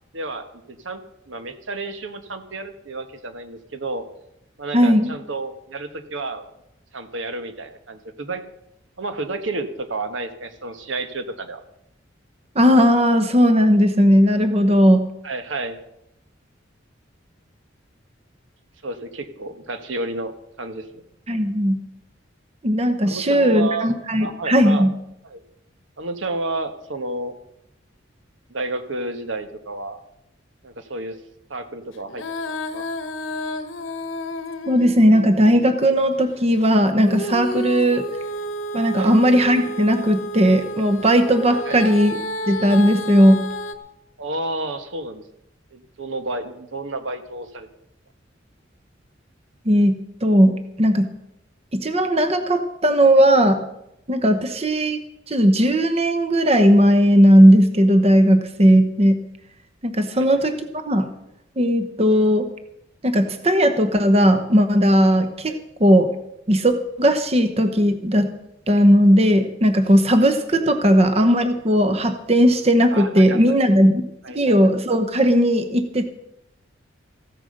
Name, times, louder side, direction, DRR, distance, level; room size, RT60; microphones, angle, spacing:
voice 1, 0.1-1.0 1.3-4.1 4.6-6.5 6.9-8.4 9.0-11.6 15.2-15.8 18.8-20.3 20.6-20.9 23.0-23.9 24.2-24.9 25.2-25.4 26.0-27.3 28.5-30.0 30.6-31.2 31.5-32.2 32.7-32.8 38.9-39.2 41.6-42.0 44.2-45.2 45.7-47.7 54.5-54.6 60.1-60.4 65.5-65.6 70.7-70.8 72.9-73.4 73.8-73.9 74.2-74.7, right 2 dB, 75° right, 9 dB, 1.3 m, -31 dB
voice 2, 4.7-5.1 12.5-15.1 21.3-21.8 22.6-24.9 34.7-38.0 38.7-42.2 42.5-43.4 49.7-51.1 51.7-53.6 54.1-55.0 55.3-59.2 59.8-60.5 60.9-61.1 61.6-62.5 63.0-65.5 65.8-66.1 66.5-68.3 68.7-74.1 74.3-76.1, equal, 30° right, 9 dB, 0.9 m, -17 dB
Female singing, 32.1-35.8 37.0-43.8, equal, 85° left, 1.2 m, -31 dB
15.0 x 9.2 x 6.5 m, 0.82 s
head